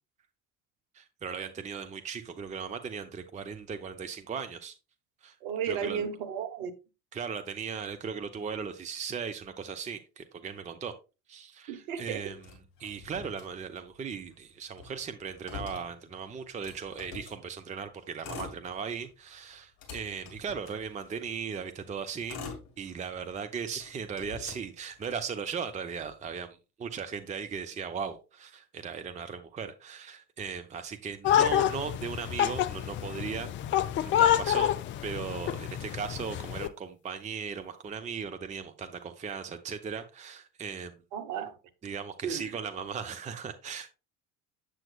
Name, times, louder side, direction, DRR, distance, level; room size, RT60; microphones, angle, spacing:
voice 1, 0.9-4.7 5.2-5.3 5.7-6.1 7.1-10.9 11.3-12.5 12.8-22.4 22.8-34.7 35.0-41.0 41.8-43.9, right 6 dB, 15° right, 0.6 m, -37 dB
voice 2, 5.4-6.7 11.7-12.2 41.1-41.5 42.2-42.5, right 8 dB, 60° right, 1.2 m, -34 dB
Motor vehicle (road), 12.4-14.0 14.3-14.4 14.7-17.4 18.1-19.1 19.5-21.3 21.9-23.3 23.8-25.3, left 5 dB, 50° left, 2.6 m, -45 dB
sound 1, 31.2-36.7, left 10 dB, 30° left, 0.4 m, -27 dB
7.6 x 7.5 x 2.3 m
figure-of-eight pair, 65°, 46 cm